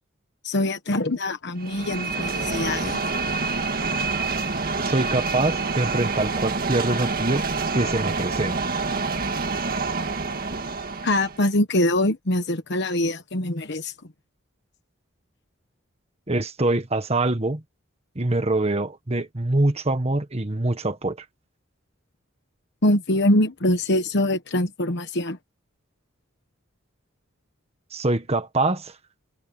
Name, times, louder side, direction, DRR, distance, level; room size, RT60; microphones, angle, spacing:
voice 1, 0.4-3.0 11.0-13.9 22.8-25.4, left 1 dB, 55° left, 1.2 m, -23 dB
sound 1, 1.6-11.4, right 4 dB, 45° right, 1.8 m, -27 dB
voice 2, 4.8-7.5 7.7-8.6 16.3-17.6 18.1-21.2 27.9-28.9, right 2 dB, 30° right, 1.5 m, -24 dB
head